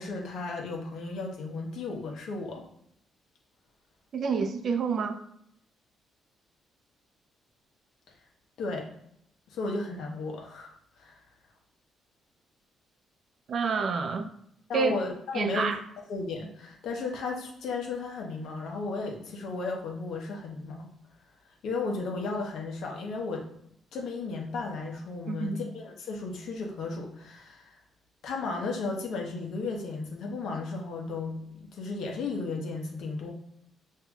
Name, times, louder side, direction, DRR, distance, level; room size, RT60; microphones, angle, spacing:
voice 1, 0.0-2.6 8.6-8.9 9.5-10.7 11.0-11.2 14.7-15.7 16.1-20.9 21.6-23.5 23.9-27.7 28.2-31.4 31.7-33.3, left 3 dB, 75° left, 0 dB, 0.9 m, -34 dB
voice 2, 4.1-5.2 13.5-14.3 14.7-14.9 15.3-15.8 25.3-25.6, right 5 dB, 55° right, 7 dB, 0.5 m, -28 dB
5.7 x 2.7 x 2.3 m, 0.71 s
cardioid pair, 90°, 0 cm